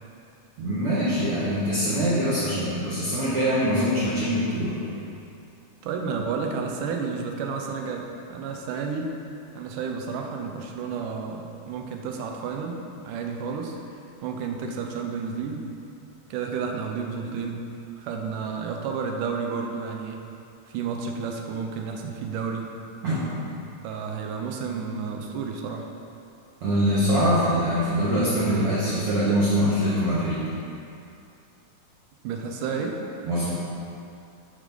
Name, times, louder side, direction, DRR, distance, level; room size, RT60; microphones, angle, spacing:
voice 1, 0.6-4.8 23.0-23.2 26.6-30.5 33.2-33.5, equal, 55° right, -10 dB, 2.0 m, -23 dB
voice 2, 5.8-9.1 9.5-13.8 14.2-15.6 16.3-17.7 18.0-20.3 20.7-22.7 23.8-25.9 32.2-33.1, right 5 dB, 85° right, 2 dB, 2.4 m, -31 dB
11.0 x 5.2 x 5.3 m, 2.6 s
omnidirectional pair, 3.7 m